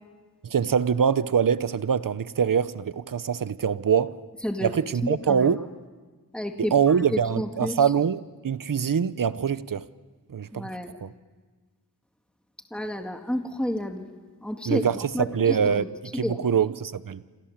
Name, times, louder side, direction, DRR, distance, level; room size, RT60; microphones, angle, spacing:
voice 1, 0.4-4.1 4.6-5.6 6.6-9.8 10.3-10.7 11.0-11.1 14.6-15.8 16.1-17.2, right 7 dB, 60° right, 1.0 m, -24 dB
voice 2, 5.0-5.5 6.3-7.7 10.5-10.9 12.7-14.1 14.4-14.8 15.1-15.9 16.1-16.4, left 1 dB, 5° left, 2.2 m, -30 dB
28.0 x 27.0 x 7.5 m
wide cardioid pair, 70°, 36 cm